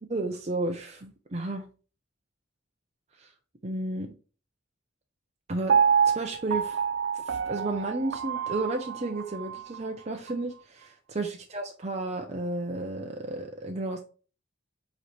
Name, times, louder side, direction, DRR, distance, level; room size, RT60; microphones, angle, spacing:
voice 1, 0.1-1.7 3.2-3.3 3.6-4.1 5.5-5.8 6.0-6.8 7.1-14.0, right 2 dB, 35° right, 3 dB, 0.8 m, -32 dB
Piano, 5.7-9.8 10.3-10.4, right 7 dB, 65° right, 0.4 m, -27 dB
8.2 x 3.2 x 4.3 m, 0.36 s
head